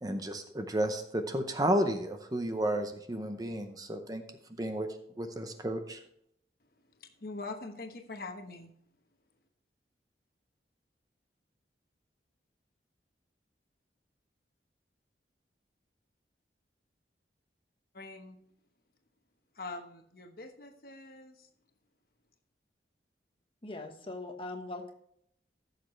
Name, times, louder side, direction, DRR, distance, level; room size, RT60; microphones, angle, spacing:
voice 1, 0.0-4.2 4.6-4.9 5.2-6.0, right 1 dB, 20° right, 7 dB, 0.7 m, -32 dB
voice 2, 6.9-8.7 17.9-18.4 19.5-21.5, left 3 dB, 55° left, 5 dB, 1.1 m, -43 dB
voice 3, 23.6-24.9, left 2 dB, 30° left, 4 dB, 1.1 m, -41 dB
14.5 x 6.6 x 3.2 m, 0.72 s
head